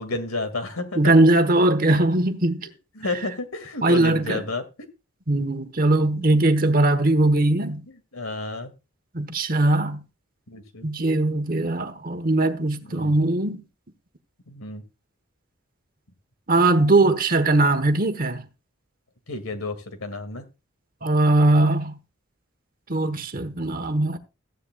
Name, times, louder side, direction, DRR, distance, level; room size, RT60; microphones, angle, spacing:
voice 1, 0.0-1.1 3.0-4.6 7.0-7.2 8.1-8.7 10.5-10.9 12.8-13.2 14.5-14.8 19.3-20.5, left 2 dB, 85° left, 2.1 m, -31 dB
voice 2, 0.9-2.6 3.8-4.4 5.3-7.8 9.1-10.0 10.8-13.6 16.5-18.4 21.0-21.9 22.9-24.2, right 2 dB, 40° right, 1.1 m, -20 dB
15.0 x 10.0 x 2.3 m
head